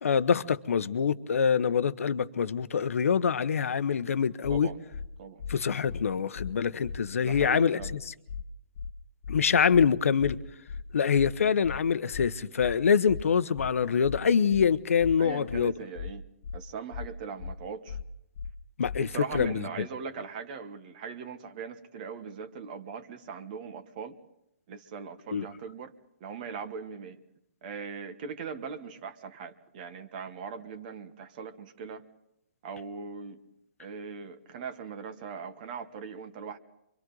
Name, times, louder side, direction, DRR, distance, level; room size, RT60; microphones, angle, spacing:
voice 1, 0.0-4.7 5.5-8.1 9.3-10.4 10.9-15.7 18.8-19.9 25.3-25.4, left 6 dB, 80° left, 1.0 m, -25 dB
sound 1, 4.4-4.6 4.9-5.1 5.4-5.6 5.9-6.0 6.4-6.5 6.8-7.0 7.3-7.5 7.8-8.0 8.3-8.4 8.8-8.9 9.2-9.4 9.7-9.9 10.2-10.4 10.7-10.8 11.2-11.3 11.6-11.8 12.1-12.3 12.6-12.8 13.1-13.2 13.6-13.7 14.0-14.2 14.5-14.7 15.0-15.2 15.5-15.6 16.0-16.1 16.4-16.6 16.9-17.1 17.4-17.6 17.9-18.0 18.4-18.5 18.8-19.0 19.3-19.5, left 6 dB, 55° left, 0.7 m, -37 dB
voice 2, 7.2-7.9 15.2-16.2 16.5-18.0 19.0-24.2 24.7-25.9 26.2-27.2 27.6-32.0 32.6-33.4 33.8-36.6, right 6 dB, 35° right, 1.2 m, -40 dB
28.0 x 24.0 x 4.0 m
hypercardioid pair, 160°, 7 cm